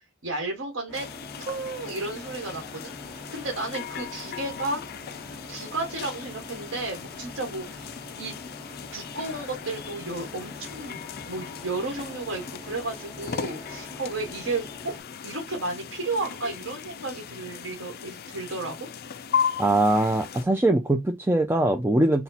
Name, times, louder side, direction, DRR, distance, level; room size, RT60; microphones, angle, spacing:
voice 1, 0.2-1.1 1.4-4.8 5.2-8.4 8.9-14.9 15.2-18.8, right 2 dB, 80° right, 1.3 m, -33 dB
sound 1, 0.9-20.4, left 7 dB, 50° left, 0.4 m, -37 dB
sound 2, 0.9-15.0, left 1 dB, 5° left, 1.3 m, -45 dB
voice 2, 19.6-22.2, right 1 dB, 10° right, 0.4 m, -22 dB
4.2 x 2.2 x 4.1 m
head